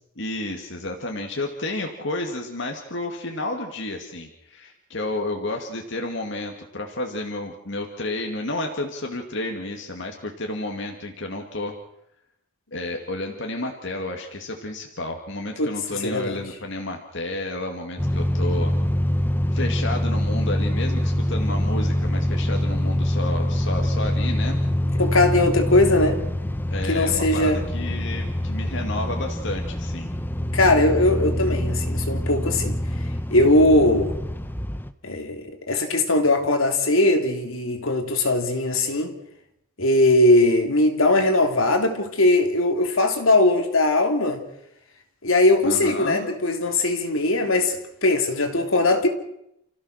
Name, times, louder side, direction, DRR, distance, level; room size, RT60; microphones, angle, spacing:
voice 1, 0.2-11.7 12.7-18.7 19.5-24.6 26.7-30.1 45.6-46.2, left 2 dB, 60° left, 2.4 m, -31 dB
voice 2, 15.6-16.4 25.0-26.2 26.9-27.6 30.5-32.7 33.3-34.1 35.0-39.1 39.8-44.4 45.2-49.1, left 2 dB, 75° left, 3.1 m, -20 dB
sound 1, 18.0-34.9, left 1 dB, 10° left, 1.0 m, -25 dB
30.0 x 15.5 x 6.6 m
head